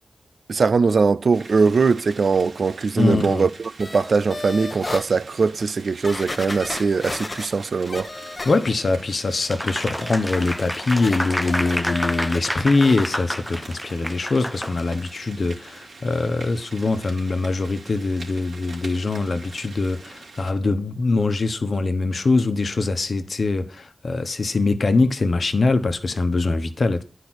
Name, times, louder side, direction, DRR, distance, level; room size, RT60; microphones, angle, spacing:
voice 1, 0.5-3.5 3.8-8.1, right 4 dB, 65° right, 0.5 m, -21 dB
sound 1, 1.3-20.5, right 3 dB, 90° right, 2.8 m, -43 dB
voice 2, 3.0-3.5 8.4-27.0, left 3 dB, 60° left, 1.1 m, -23 dB
sound 2, 3.8-5.1 5.6-5.7 6.0-9.0 9.3-12.4 12.7-13.1 13.4-13.5, left 2 dB, 35° left, 0.9 m, -35 dB
Applause, 9.5-15.1, equal, 5° left, 0.4 m, -29 dB
10.5 x 5.1 x 6.2 m
cardioid pair, 65°, 0 cm